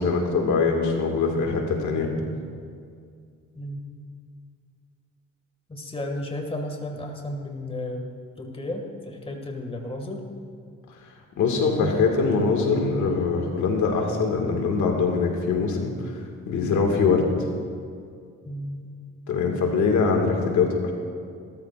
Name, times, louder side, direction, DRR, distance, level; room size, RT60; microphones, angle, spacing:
voice 1, 0.0-2.1 11.4-16.2 16.5-17.3 19.3-20.9, left 4 dB, 75° left, 2 dB, 1.9 m, -23 dB
voice 2, 3.5-3.9 5.7-8.1 8.4-10.2 18.5-18.9, left 1 dB, 20° left, 2 dB, 1.9 m, -33 dB
18.5 x 13.5 x 2.5 m, 2.2 s
cardioid pair, 90°, 30 cm